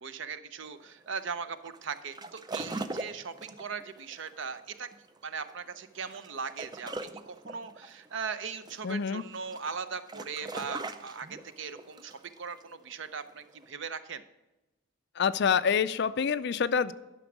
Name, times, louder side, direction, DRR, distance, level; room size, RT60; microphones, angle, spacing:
voice 1, 0.0-4.9 5.2-6.9 7.3-14.2, right 5 dB, 55° right, 12 dB, 0.6 m, -39 dB
sound 1, 0.6-13.7, right 2 dB, 20° right, 0.4 m, -42 dB
voice 2, 8.8-9.2 15.2-16.9, left 6 dB, 50° left, 15 dB, 0.4 m, -27 dB
11.5 x 6.1 x 6.0 m, 0.99 s
head